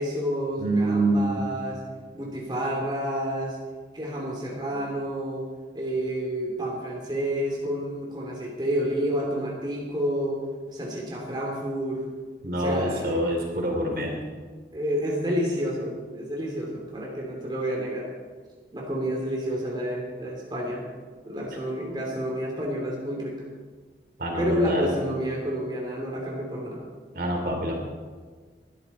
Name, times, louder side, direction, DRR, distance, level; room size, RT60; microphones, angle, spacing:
voice 1, 0.0-1.8 2.1-3.6 3.9-5.5 5.7-10.4 10.7-12.0 12.6-13.2 13.5-13.7 14.7-18.1 18.7-20.9 21.2-23.4 24.4-26.8, equal, 25° right, -2 dB, 2.7 m, -29 dB
voice 2, 0.6-1.5 12.4-14.1 24.2-24.9 27.1-27.7, right 1 dB, 55° right, 1 dB, 3.1 m, -26 dB
21.5 x 12.5 x 4.2 m, 1.5 s
head